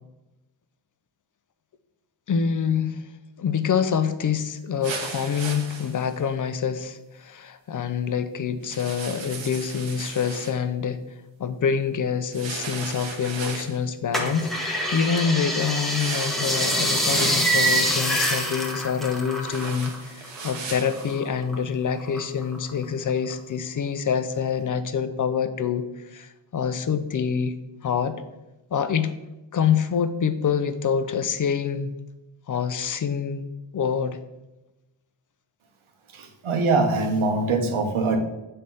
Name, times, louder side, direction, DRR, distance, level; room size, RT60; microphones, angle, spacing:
voice 1, 2.3-3.1 3.4-11.0 11.4-27.6 27.8-28.2 28.7-29.1 29.5-31.9 32.5-33.5 33.7-34.2, left 7 dB, 40° left, 11 dB, 0.5 m, -26 dB
sound 1, 4.8-6.2 8.6-10.6 12.3-13.8 15.9-17.5 19.4-21.2, right 5 dB, 65° right, 1.1 m, -36 dB
sound 2, 14.1-20.0 20.2-21.5 22.0-22.8 23.3-23.4, right 1 dB, ahead, 1.0 m, -25 dB
voice 2, 36.1-38.2, right 3 dB, 85° right, 5 dB, 1.2 m, -23 dB
7.5 x 3.3 x 5.4 m, 1.0 s
wide cardioid pair, 135°, 48 cm